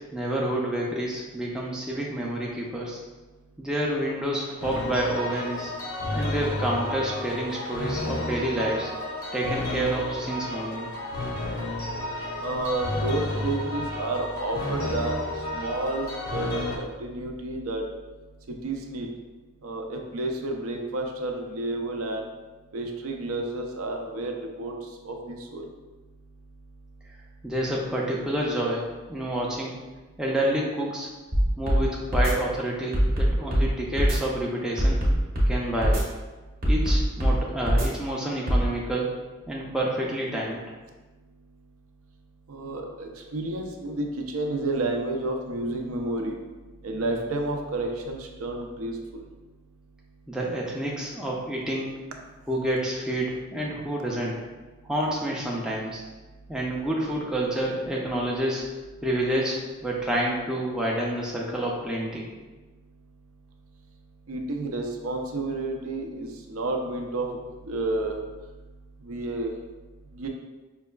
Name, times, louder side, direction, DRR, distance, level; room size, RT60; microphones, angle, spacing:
voice 1, 0.1-3.0 3.6-5.7 6.1-8.9 9.3-10.9 27.4-28.8 29.1-29.7 30.2-31.1 31.6-35.1 35.4-36.0 36.7-39.1 39.5-40.6 50.3-51.9 52.5-54.4 54.8-56.0 56.5-58.7 59.0-62.3, right 1 dB, 5° right, -4 dB, 0.4 m, -28 dB
sound 1, 4.6-16.8, left 1 dB, 75° left, 0.6 m, -31 dB
voice 2, 12.4-15.2 15.5-17.8 18.5-19.1 19.6-22.3 22.7-24.8 25.0-25.6 42.5-46.4 46.8-49.0 64.3-67.4 67.6-68.2 69.0-69.5 70.1-70.3, right 2 dB, 80° right, 2 dB, 0.5 m, -30 dB
sound 2, 31.3-31.8 32.1-32.3 32.9-33.7 34.0-34.2 34.8-35.5 35.8-36.0 36.6-37.4 37.7-37.9 38.5-38.6, equal, 40° right, 0.8 m, -21 dB
5.2 x 2.3 x 2.2 m, 1.2 s
head